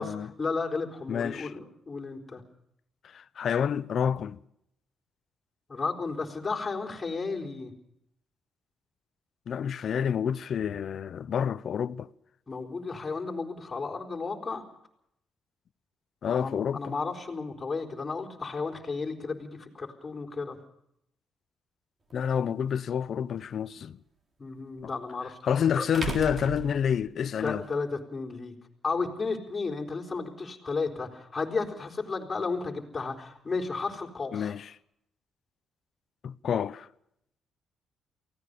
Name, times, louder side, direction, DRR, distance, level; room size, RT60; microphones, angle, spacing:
voice 1, 0.4-2.4 5.7-7.7 12.5-14.6 16.3-20.6 24.4-25.4 25.8-25.9 27.4-28.5 28.8-34.5, left 4 dB, 25° left, 4.3 m, -33 dB
voice 2, 1.1-1.5 3.1-4.4 9.5-12.1 16.2-16.9 22.1-24.0 24.8-24.9 25.4-27.6 34.3-34.7 36.2-36.9, left 8 dB, 60° left, 0.8 m, -28 dB
sound 1, 22.1-22.2 24.8-24.9 25.9-27.5, right 5 dB, 35° right, 3.8 m, -36 dB
24.0 x 17.0 x 6.8 m
cardioid pair, 90°, 0 cm